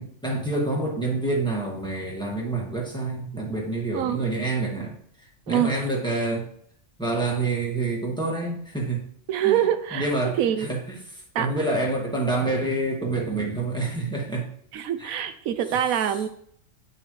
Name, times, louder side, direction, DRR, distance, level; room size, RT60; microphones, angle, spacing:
voice 1, 0.0-5.0 5.5-6.5 7.0-9.1 9.4-9.6 9.9-11.0 11.4-14.5 15.0-15.2, right 2 dB, 5° left, -3 dB, 1.9 m, -27 dB
voice 2, 9.3-10.1 10.4-10.7 11.3-11.5 14.7-16.3, right 10 dB, 90° right, 9 dB, 1.1 m, -24 dB
9.5 x 5.7 x 3.2 m, 0.64 s
omnidirectional pair, 1.4 m